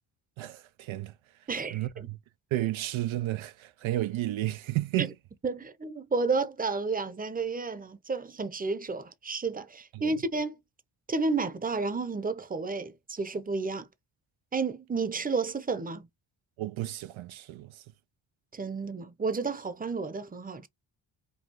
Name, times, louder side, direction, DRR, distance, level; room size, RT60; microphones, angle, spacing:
voice 1, 0.4-1.1 1.7-2.2 2.5-5.1 9.9-10.1 16.6-17.8, right 15 dB, 70° right, 0.6 m, -32 dB
voice 2, 1.5-2.1 5.4-10.6 11.1-13.9 14.5-16.1 18.5-20.7, right 4 dB, 15° right, 0.8 m, -31 dB
5.5 x 2.3 x 3.0 m
cardioid pair, 65°, 50 cm